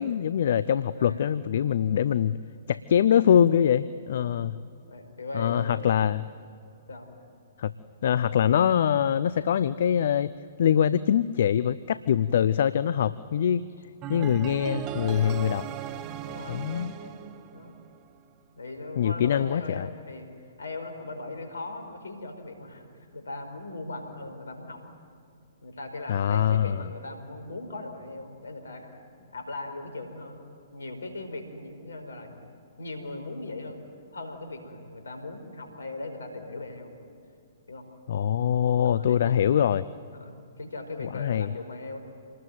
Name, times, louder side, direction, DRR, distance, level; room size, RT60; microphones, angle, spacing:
voice 1, 0.0-2.4 2.7-4.6 5.3-6.3 7.6-7.7 8.0-10.3 10.6-13.6 14.1-15.6 16.5-16.9 19.0-19.9 26.1-26.8 38.1-39.9 41.1-41.5, left 9 dB, 60° left, 16 dB, 0.6 m, -23 dB
voice 2, 0.8-1.2 4.1-4.5 4.9-5.9 6.9-7.1 16.2-17.2 17.5-17.8 18.5-20.3 20.6-22.9 23.1-24.8 25.6-30.4 30.7-32.4 32.8-33.8 34.1-36.9 37.7-37.8 38.8-39.4 40.1-42.0, left 2 dB, 80° left, 6 dB, 4.8 m, -39 dB
sound 1, 14.0-18.1, right 11 dB, 30° right, 1.3 m, -37 dB
27.5 x 20.0 x 9.4 m, 2.4 s
figure-of-eight pair, 125°, 0 cm